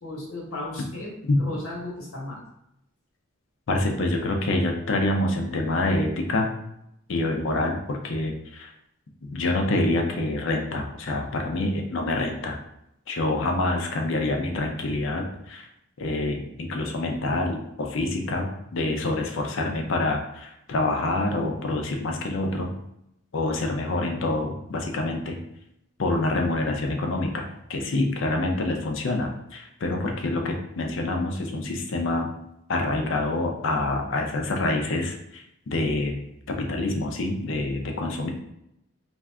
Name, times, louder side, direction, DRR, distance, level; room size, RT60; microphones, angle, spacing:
voice 1, 0.0-2.4, left 1 dB, 85° left, -3 dB, 1.0 m, -35 dB
voice 2, 3.7-6.5 7.1-8.7 9.2-12.6 13.1-15.7 16.0-22.7 23.3-25.4 26.0-32.3 32.7-38.3, left 2 dB, 60° left, 3 dB, 0.5 m, -26 dB
2.5 x 2.3 x 3.3 m, 0.81 s
head